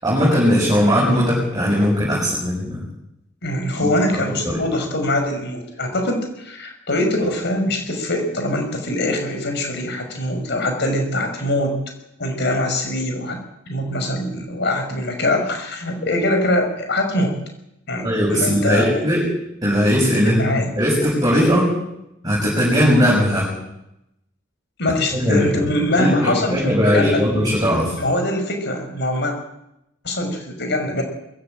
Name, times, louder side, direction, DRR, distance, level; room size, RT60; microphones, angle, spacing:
voice 1, 0.0-2.8 3.8-4.6 18.0-19.2 19.6-20.4 20.8-21.7 22.2-23.5 25.1-25.7 26.0-27.9, equal, 20° right, -4 dB, 6.8 m, -18 dB
voice 2, 3.4-11.7 12.2-13.4 13.7-17.3 17.9-19.0 20.2-20.7 24.8-27.2 28.0-29.3 30.0-31.0, left 1 dB, 60° left, 5 dB, 5.5 m, -23 dB
21.5 x 16.0 x 8.9 m, 0.84 s
head